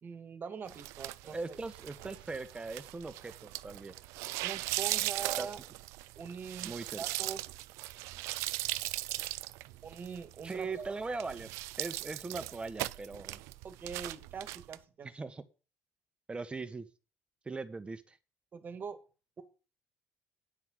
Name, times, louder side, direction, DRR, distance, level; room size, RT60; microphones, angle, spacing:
voice 1, 0.0-1.6 4.4-5.6 6.2-7.4 9.8-10.9 13.6-15.1 18.5-19.0, right 6 dB, 40° right, 10 dB, 1.9 m, -43 dB
sound 1, 0.7-14.8, right 19 dB, 85° right, 0.5 m, -39 dB
voice 2, 1.2-3.9 5.4-5.5 6.6-7.0 10.4-11.5 11.8-13.4 15.0-15.4 16.3-16.9 17.4-18.2, right 3 dB, 20° right, 11 dB, 1.4 m, -40 dB
9.8 x 5.8 x 7.8 m, 0.34 s
supercardioid pair, 85°, 5 cm